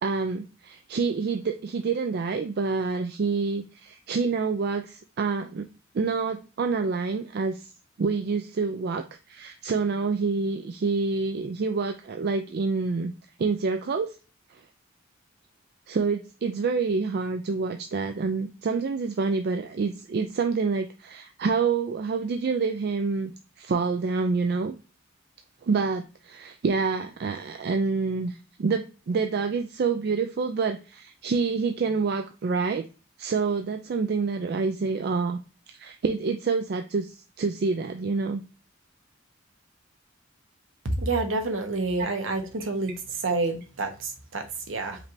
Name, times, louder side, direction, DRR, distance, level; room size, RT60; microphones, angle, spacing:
voice 1, 0.0-5.7 5.9-7.7 8.0-13.1 13.4-14.2 14.5-14.6 15.9-23.3 23.6-24.7 25.6-32.8 33.2-35.4 35.7-38.4 42.0-42.1 42.6-42.7, right 4 dB, 50° right, 6 dB, 0.3 m, -27 dB
voice 2, 41.0-42.9 43.2-45.0, right 3 dB, 70° right, 5 dB, 1.0 m, -28 dB
5.1 x 3.2 x 2.6 m, 0.32 s
head